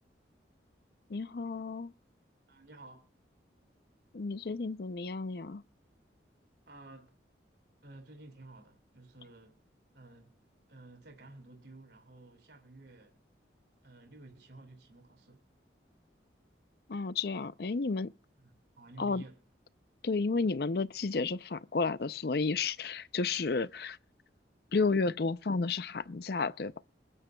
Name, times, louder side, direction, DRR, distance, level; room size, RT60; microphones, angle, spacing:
voice 1, 1.1-1.9 4.1-5.6 16.9-18.1 19.0-19.2 20.0-24.0 24.7-26.7, left 4 dB, 55° left, 0.5 m, -32 dB
voice 2, 2.5-3.1 6.7-7.1 7.8-9.6 9.9-10.3 10.7-13.2 13.8-15.4 18.4-19.4, right 2 dB, 65° right, 2.7 m, -53 dB
28.0 x 9.9 x 2.3 m
head